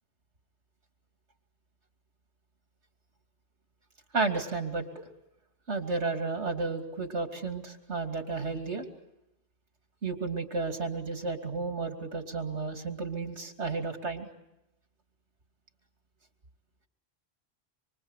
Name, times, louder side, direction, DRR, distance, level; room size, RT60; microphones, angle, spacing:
voice 1, 4.1-5.0 5.7-8.9 10.0-14.3, right 4 dB, 80° right, 5 dB, 3.0 m, -32 dB
26.0 x 25.0 x 8.2 m, 0.90 s
omnidirectional pair, 1.1 m